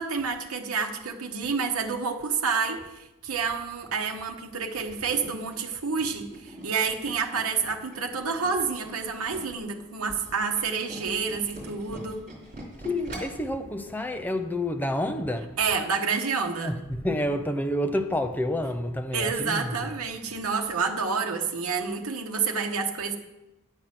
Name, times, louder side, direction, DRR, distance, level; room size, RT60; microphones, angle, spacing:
voice 1, 0.0-12.2 15.6-16.7 19.1-23.2, right 5 dB, 70° right, 1.1 m, -29 dB
Tools, 4.6-9.6 10.0-13.5 13.9-14.1 14.4-14.5, right 1 dB, 40° right, 3.5 m, -43 dB
voice 2, 12.8-15.6 16.6-19.9, left 1 dB, 10° left, 0.6 m, -29 dB
10.0 x 7.8 x 5.9 m
head